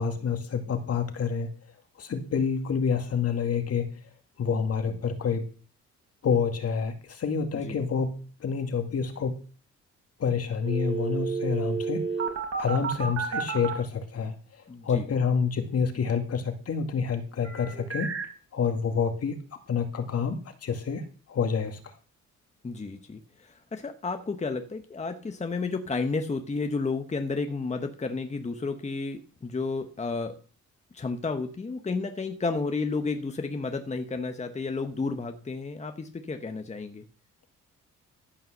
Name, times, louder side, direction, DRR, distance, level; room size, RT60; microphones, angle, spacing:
voice 1, 0.0-1.5 2.0-4.0 4.4-5.5 6.2-9.4 10.2-12.1 12.6-18.2 18.5-19.4 19.7-22.0, left 6 dB, 50° left, 7 dB, 2.2 m, -28 dB
sound 1, 10.6-13.7 17.4-18.3, right 6 dB, 50° right, 4.4 m, -30 dB
voice 2, 14.7-15.0 22.6-30.4 30.9-37.0, left 4 dB, 25° left, 7 dB, 1.1 m, -32 dB
14.0 x 5.6 x 6.7 m, 0.38 s
cardioid pair, 90°, 30 cm